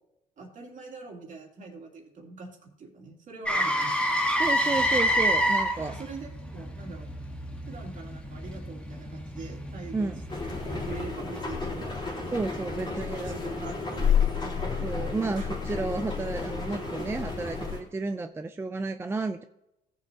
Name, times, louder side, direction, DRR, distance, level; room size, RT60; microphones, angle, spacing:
voice 1, 0.4-4.1 5.8-7.1 7.7-10.1 10.7-12.0 12.8-14.9 15.2-15.5, right 4 dB, 50° right, 1 dB, 2.7 m, -43 dB
Motor vehicle (road), 3.5-11.4 15.7-15.8, equal, 5° left, 1.4 m, -29 dB
voice 2, 4.4-6.0 9.9-10.2 12.3-13.3 14.8-19.4, right 3 dB, 15° right, 8 dB, 0.4 m, -32 dB
sound 1, 10.3-17.8, left 6 dB, 25° left, 3.2 m, -31 dB
17.0 x 7.4 x 2.8 m, 0.89 s
cardioid pair, 110°, 17 cm